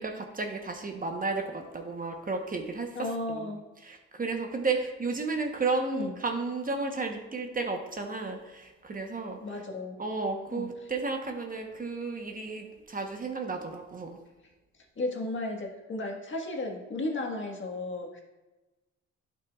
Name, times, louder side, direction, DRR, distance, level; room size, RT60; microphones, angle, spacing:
voice 1, 0.0-3.5 3.8-9.4 10.0-14.2, right 3 dB, 30° right, 4 dB, 1.0 m, -33 dB
voice 2, 2.9-3.6 5.9-6.1 9.4-10.0 10.5-10.7 15.0-18.2, left 2 dB, 40° left, 1 dB, 1.6 m, -34 dB
11.0 x 6.1 x 2.4 m, 1.1 s
cardioid pair, 90°, 30 cm